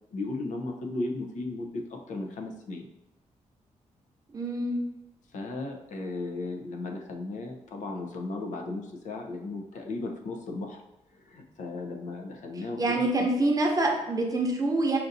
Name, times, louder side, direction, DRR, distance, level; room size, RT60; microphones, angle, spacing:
voice 1, 0.1-2.9 5.3-10.8 11.3-13.3, left 2 dB, 75° left, 2 dB, 0.7 m, -35 dB
voice 2, 4.3-4.8 12.8-15.0, right 2 dB, 25° right, 0 dB, 0.7 m, -26 dB
5.8 x 2.6 x 2.6 m, 0.91 s
wide cardioid pair, 145°, 13 cm